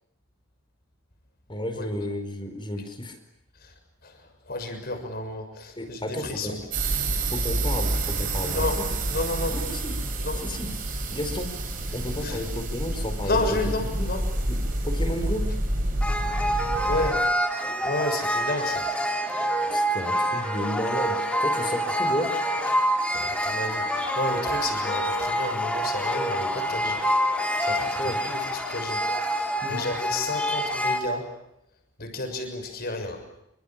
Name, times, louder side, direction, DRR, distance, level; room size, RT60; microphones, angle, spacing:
voice 1, 1.5-3.2 5.8-6.6 7.3-8.9 9.5-9.9 10.4-10.7 11.1-11.5 11.9-13.4 13.7-14.1 14.5-14.6 14.8-15.5 19.6-22.3 28.0-28.2 29.6-29.8, left 1 dB, 25° left, 8 dB, 4.7 m, -32 dB
voice 2, 4.0-7.0 8.4-8.8 9.1-9.6 10.2-10.5 12.2-12.4 13.2-14.2 16.8-17.3 17.8-18.9 22.7-27.0 27.6-29.4 29.7-31.3 32.0-33.3, left 2 dB, 50° left, 6 dB, 6.6 m, -31 dB
sound 1, 6.7-17.1, right 2 dB, 40° right, 6.9 m, -28 dB
sound 2, 16.0-31.0, equal, 5° left, 3.3 m, -26 dB
27.5 x 25.5 x 7.5 m, 0.82 s
head